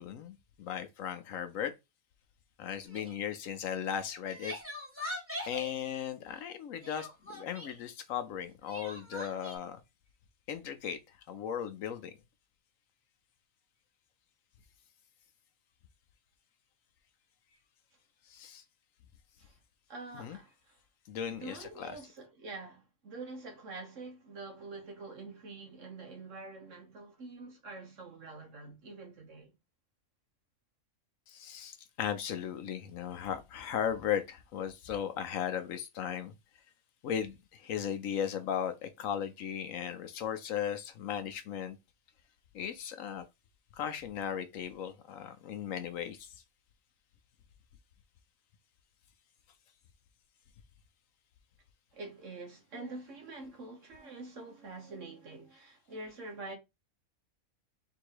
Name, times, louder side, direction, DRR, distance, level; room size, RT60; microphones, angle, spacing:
voice 1, 0.0-1.7 2.6-4.5 5.5-9.8 10.5-12.1 18.3-18.6 20.1-20.4 21.1-22.0 31.3-36.3 37.0-41.8 42.5-43.2 43.7-46.4, left 9 dB, 70° left, 1.0 m, -37 dB
Crying sobbing, 2.9-3.2 4.0-5.7 6.8-7.8 8.7-9.6, left 1 dB, 10° right, 1.3 m, -42 dB
voice 2, 19.9-20.8 21.3-29.5 51.9-56.5, right 3 dB, 60° right, 1.5 m, -46 dB
3.8 x 2.7 x 4.6 m
omnidirectional pair, 1.5 m